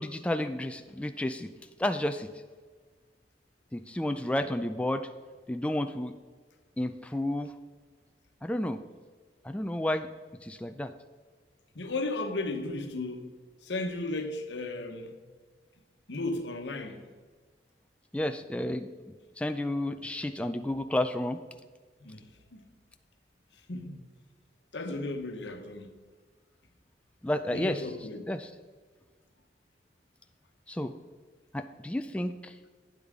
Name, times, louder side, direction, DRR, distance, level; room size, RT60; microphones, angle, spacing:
voice 1, 0.0-1.5 1.8-2.3 3.7-5.1 5.5-6.1 6.8-7.5 8.4-8.8 9.4-10.1 10.4-10.9 18.1-18.9 19.4-21.4 27.2-27.9 28.3-28.5 30.7-30.9 31.5-32.5, left 1 dB, 5° left, 0.3 m, -31 dB
voice 2, 11.7-13.3 13.6-15.2 16.1-17.0 22.0-22.2 22.5-22.7 23.7-23.9 24.7-25.9 27.5-28.3, left 2 dB, 85° left, 1.1 m, -35 dB
12.0 x 9.5 x 3.6 m
head